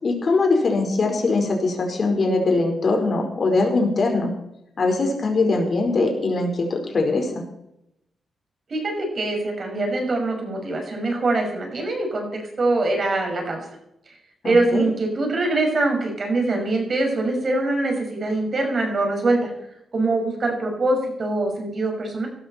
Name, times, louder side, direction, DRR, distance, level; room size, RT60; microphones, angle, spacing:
voice 1, 0.0-4.3 4.8-7.4 14.4-14.8, left 3 dB, 50° left, 3 dB, 4.7 m, -21 dB
voice 2, 8.7-13.6 14.4-19.5 19.9-22.3, right 2 dB, 50° right, 2 dB, 6.0 m, -23 dB
17.0 x 13.0 x 4.5 m, 0.82 s
cardioid pair, 80°, 0 cm